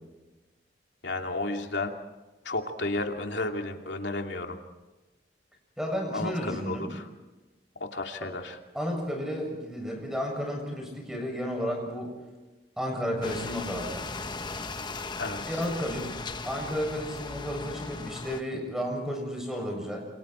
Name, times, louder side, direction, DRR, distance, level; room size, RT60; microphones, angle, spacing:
voice 1, 1.0-1.9 2.4-4.6 6.1-7.1 7.8-8.6 15.2-15.6, left 2 dB, 85° left, 3 dB, 2.7 m, -32 dB
voice 2, 5.8-7.0 8.2-8.3 8.7-12.1 12.8-14.1 15.4-16.1 16.4-20.0, equal, 5° right, 1 dB, 7.4 m, -32 dB
sound 1, 13.2-18.4, left 3 dB, 25° left, 1.0 m, -37 dB
28.0 x 28.0 x 4.5 m, 1.2 s
head